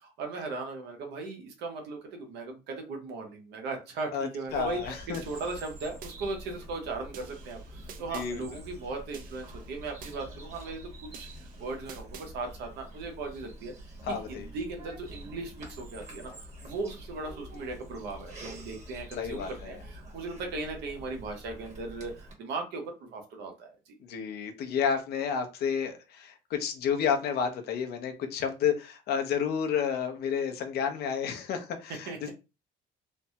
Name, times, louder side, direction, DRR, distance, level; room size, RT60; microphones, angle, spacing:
voice 1, 0.2-13.7 14.1-23.7 32.1-32.3, right 3 dB, 85° right, 3 dB, 0.9 m, -38 dB
voice 2, 4.1-5.2 8.1-8.4 14.0-14.5 19.2-19.8 24.1-32.3, left 7 dB, 70° left, 6 dB, 0.6 m, -31 dB
Bird vocalization bird call bird song, 4.5-22.3, equal, 40° right, 1.3 m, -46 dB
sound 1, 5.1-6.2 7.1-8.3 9.1-10.2 11.1-12.3, right 7 dB, 60° right, 0.5 m, -49 dB
3.3 x 2.1 x 2.7 m, 0.28 s
cardioid pair, 110°, 17 cm